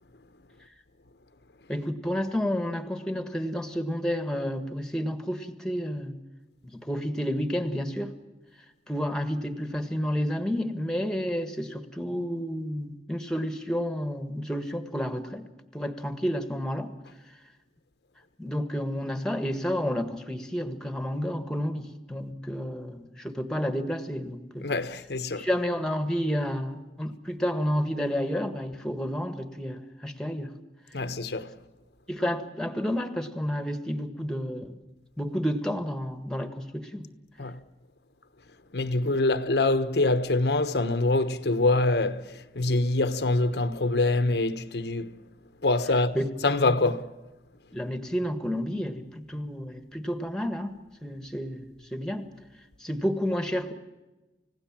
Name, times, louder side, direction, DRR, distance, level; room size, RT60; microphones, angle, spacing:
voice 1, 1.7-6.2 6.6-8.1 8.9-15.5 15.7-16.9 18.4-24.7 25.4-30.5 32.1-34.8 35.2-37.1 46.1-46.2 46.6-46.7 47.7-52.3 52.8-53.7, equal, 5° left, 1.6 m, -30 dB
voice 2, 24.6-25.5 30.9-31.5 37.4-37.6 38.7-45.1 45.6-46.2 46.4-47.0, left 2 dB, 65° left, 1.1 m, -25 dB
30.0 x 16.5 x 7.5 m
head